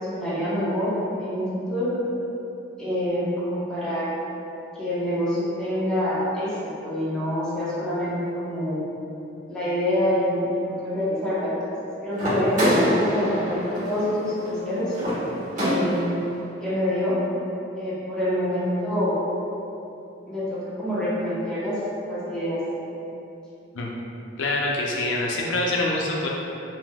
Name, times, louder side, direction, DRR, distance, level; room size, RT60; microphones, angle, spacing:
voice 1, 0.0-2.0 2.8-4.1 4.7-8.9 9.5-11.6 12.0-15.0 15.6-16.1 16.6-17.2 17.8-19.2 20.3-21.8 22.1-22.6, left 1 dB, 5° left, -11 dB, 0.7 m, -26 dB
sound 1, 12.1-16.3, equal, 40° right, 1.1 m, -25 dB
voice 2, 24.4-26.3, left 2 dB, 85° left, -2 dB, 0.5 m, -25 dB
3.4 x 2.7 x 2.2 m, 2.9 s
head